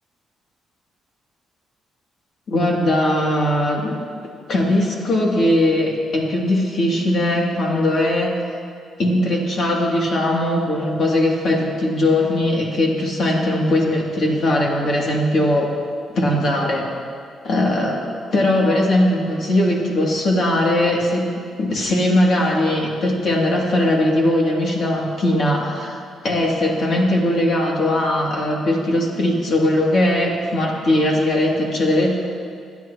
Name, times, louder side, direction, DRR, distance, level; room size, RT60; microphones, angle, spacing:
voice 1, 2.5-4.0 4.5-8.3 9.0-15.7 16.1-16.8 17.4-21.3 21.6-25.9 26.2-32.2, left 1 dB, 55° left, -2 dB, 2.7 m, -19 dB
25.0 x 9.4 x 3.0 m, 2.3 s
cardioid pair, 90°, 0 cm